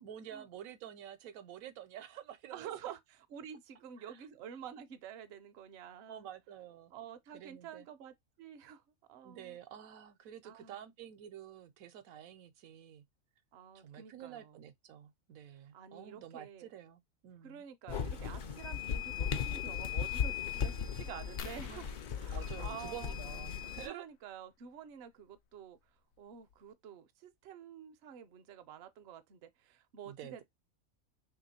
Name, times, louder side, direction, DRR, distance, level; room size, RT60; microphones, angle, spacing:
voice 1, 0.0-2.7 4.0-4.2 6.1-6.9 7.3-7.9 9.2-13.0 13.7-17.7 21.7-21.9 22.3-24.0 30.1-30.4, right 10 dB, 80° right, 1.0 m, -49 dB
voice 2, 2.5-6.3 6.9-8.8 9.1-9.6 10.4-10.8 13.5-14.6 15.7-16.7 17.4-21.8 22.1-23.2 23.8-25.8 26.2-30.4, right 8 dB, 60° right, 0.8 m, -49 dB
sound 1, 17.9-23.9, left 7 dB, 60° left, 0.5 m, -37 dB
sound 2, 21.4-23.8 25.4-25.5 26.1-26.2 26.5-26.7, left 7 dB, 80° left, 1.0 m, -52 dB
3.0 x 2.9 x 4.0 m
omnidirectional pair, 1.5 m